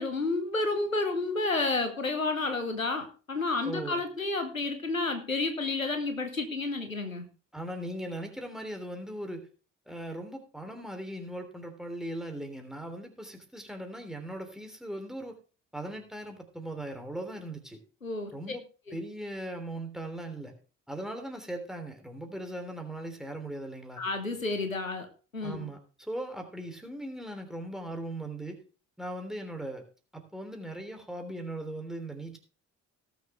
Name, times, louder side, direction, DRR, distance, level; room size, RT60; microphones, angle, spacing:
voice 1, 0.0-7.3 18.0-18.3 18.9-19.0 24.0-25.1 25.3-25.7, left 3 dB, 90° left, 7 dB, 1.0 m, -30 dB
voice 2, 3.6-4.0 7.5-9.5 9.9-15.3 15.7-17.8 18.3-18.6 18.9-20.6 20.9-24.1 25.4-28.6 29.0-29.8 30.1-32.4, right 1 dB, ahead, 5 dB, 3.3 m, -39 dB
18.0 x 6.8 x 3.5 m, 0.36 s
figure-of-eight pair, 45°, 39 cm